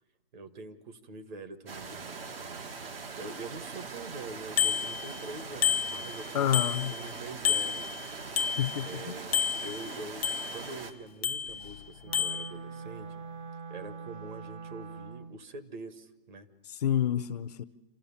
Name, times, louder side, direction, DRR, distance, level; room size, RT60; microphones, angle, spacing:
voice 1, 0.3-2.7 3.2-6.5 6.9-7.9 8.8-13.2 13.7-16.5, right 3 dB, 50° right, 1.7 m, -44 dB
sound 1, 1.7-10.9, right 4 dB, 75° right, 2.0 m, -42 dB
Bicycle bell, 4.6-5.3 5.6-7.1 7.5-9.0 9.3-10.8 11.2-11.8 12.1-12.5, left 8 dB, 85° left, 0.7 m, -30 dB
voice 2, 6.3-6.9 8.6-9.1 16.7-17.6, left 10 dB, 40° left, 0.6 m, -29 dB
Wind instrument woodwind instrument, 12.0-15.4, right 5 dB, 30° right, 0.8 m, -43 dB
28.0 x 14.0 x 7.1 m
hypercardioid pair, 155°, 30 cm